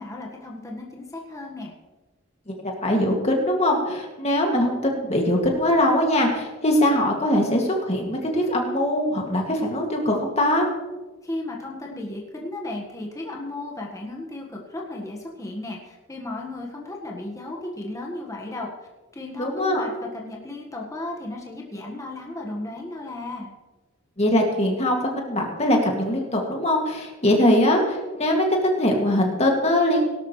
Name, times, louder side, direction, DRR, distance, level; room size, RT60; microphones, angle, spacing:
voice 1, 0.0-1.7 11.2-23.5, left 2 dB, 15° left, -1 dB, 1.6 m, -35 dB
voice 2, 2.5-10.7 19.4-19.8 24.2-30.1, left 1 dB, 30° left, 1 dB, 2.3 m, -22 dB
17.5 x 12.0 x 3.2 m, 1.2 s
head